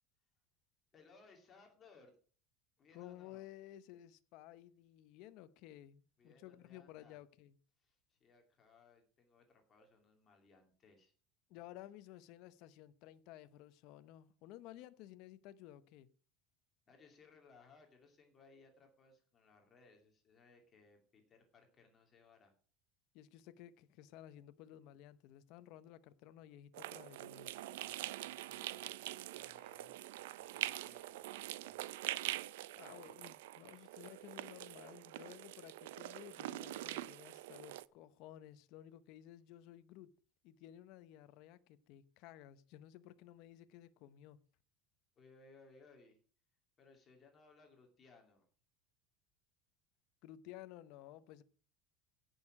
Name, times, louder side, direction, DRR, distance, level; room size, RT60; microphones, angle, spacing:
voice 1, 0.9-2.2 2.8-3.5 6.2-7.2 7.8-11.1 16.9-22.5 27.6-31.8 45.2-46.2 46.8-48.4, left 4 dB, 20° left, 2.3 m, -65 dB
voice 2, 2.9-7.6 11.5-16.1 23.1-27.5 32.7-40.1 40.4-44.4 50.2-51.4, left 13 dB, 50° left, 0.8 m, -55 dB
sound 1, 26.7-37.9, right 16 dB, 90° right, 0.4 m, -44 dB
16.0 x 6.5 x 4.9 m
cardioid pair, 170°, 0 cm